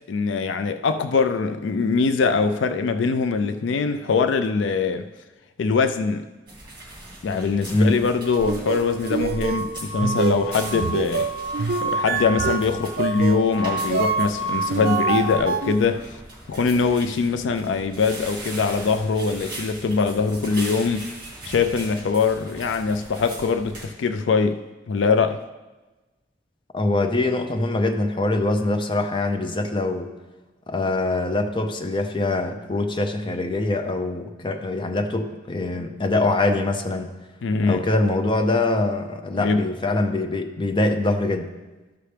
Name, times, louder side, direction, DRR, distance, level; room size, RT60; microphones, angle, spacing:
voice 1, 0.0-5.1 5.6-6.3 7.2-11.3 11.8-16.2 16.5-21.1 21.5-25.4 37.4-37.9 39.3-39.6, left 4 dB, 70° left, 10 dB, 0.4 m, -22 dB
sound 1, 6.5-23.9, right 1 dB, 25° right, 2.2 m, -40 dB
sound 2, 8.2-15.4, right 1 dB, 85° left, 2.5 m, -30 dB
sound 3, 8.4-15.8, right 5 dB, 55° right, 0.3 m, -27 dB
voice 2, 26.7-30.1 30.7-37.2 37.7-41.5, left 2 dB, 25° left, 5 dB, 0.6 m, -23 dB
13.0 x 5.7 x 3.3 m, 1.2 s
head